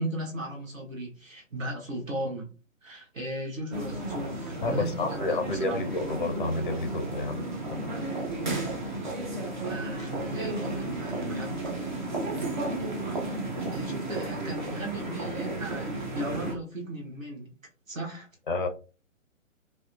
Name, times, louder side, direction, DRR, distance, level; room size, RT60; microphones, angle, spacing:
voice 1, 0.0-2.5 2.8-5.8 9.6-11.7 13.7-17.5 17.9-18.3, right 1 dB, 75° right, 1.1 m, -36 dB
sound 1, 3.7-16.5, right 2 dB, 35° right, 0.5 m, -33 dB
voice 2, 4.6-7.4 7.7-8.1 18.5-18.7, left 3 dB, 40° left, 0.4 m, -30 dB
2.6 x 2.1 x 2.4 m
figure-of-eight pair, 130°, 40 cm